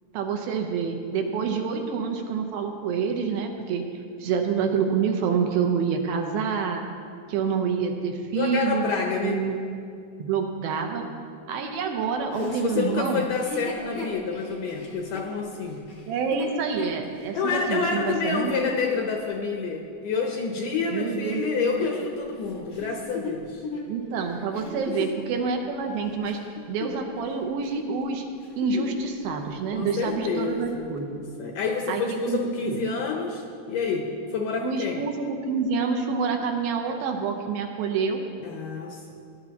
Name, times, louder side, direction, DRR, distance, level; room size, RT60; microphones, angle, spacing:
voice 1, 0.1-3.9 4.2-6.8 7.3-8.9 9.2-9.6 10.2-11.0 11.5-13.3 16.1-18.8 20.9-21.9 23.9-26.4 26.7-28.2 28.6-31.1 31.9-32.8 34.6-38.2, right 5 dB, 80° right, 3 dB, 2.6 m, -27 dB
voice 2, 8.3-9.4 12.4-15.8 17.3-23.6 29.7-30.9 31.4-35.0 38.4-39.1, left 5 dB, 75° left, 1 dB, 2.0 m, -28 dB
Chuckle chortle, 12.3-17.9 18.5-18.6 21.3-25.2 25.8-27.3 27.6-27.9 28.3-29.1 29.4-29.5 29.8-30.3 31.0-31.1, left 3 dB, 45° left, 1.1 m, -37 dB
19.0 x 11.0 x 2.9 m, 2.3 s
omnidirectional pair, 4.4 m